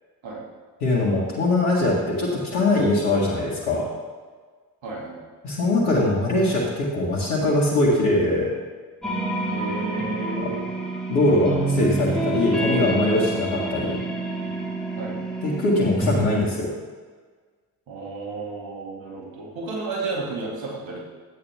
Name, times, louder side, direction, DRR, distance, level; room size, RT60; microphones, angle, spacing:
voice 1, 0.8-3.9 5.4-8.5 10.4-10.5 11.1-13.9 15.4-16.7, left 2 dB, 80° left, -6 dB, 1.9 m, -22 dB
voice 2, 4.8-5.2 9.5-10.7 15.0-15.1 17.9-21.0, right 3 dB, 65° right, -2 dB, 2.6 m, -32 dB
sound 1, 9.0-16.3, right 2 dB, ahead, 3.2 m, -27 dB
12.0 x 9.0 x 3.6 m, 1.5 s
hypercardioid pair, 40°, 48 cm